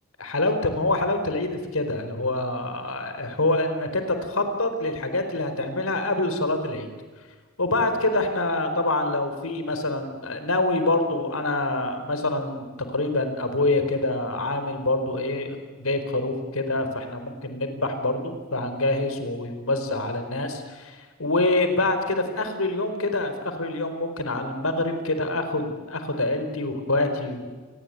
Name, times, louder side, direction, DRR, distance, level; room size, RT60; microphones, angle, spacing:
voice 1, 0.2-6.9 7.6-12.7 12.9-27.5, left 2 dB, 85° left, 8 dB, 4.6 m, -26 dB
28.5 x 20.0 x 9.5 m, 1.4 s
head